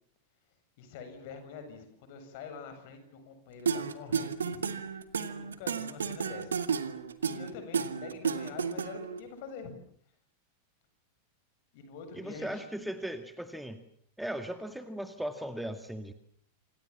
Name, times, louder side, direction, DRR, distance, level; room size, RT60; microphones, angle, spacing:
voice 1, 0.8-6.6 7.3-9.7 11.7-12.6, left 5 dB, 50° left, 8 dB, 7.8 m, -46 dB
sound 1, 3.7-9.2, right 6 dB, 70° right, 2.0 m, -32 dB
voice 2, 12.1-13.8 14.2-16.1, right 1 dB, ahead, 8 dB, 2.0 m, -37 dB
27.5 x 27.0 x 7.3 m, 0.63 s
figure-of-eight pair, 90°, 0 cm